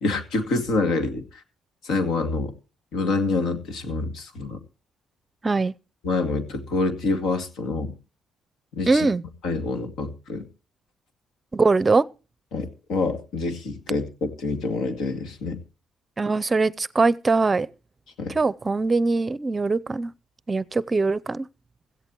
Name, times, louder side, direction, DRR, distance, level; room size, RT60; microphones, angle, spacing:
voice 1, 0.0-1.4 1.8-2.5 2.9-4.6 6.0-7.9 8.7-9.1 9.4-10.5 12.5-15.6 18.2-18.3, left 3 dB, 85° left, 2.3 m, -26 dB
voice 2, 8.9-9.2 11.5-12.1 16.2-17.7 18.3-20.1 20.5-21.5, right 3 dB, 25° right, 0.6 m, -22 dB
17.0 x 14.0 x 3.0 m
cardioid pair, 90°, 0 cm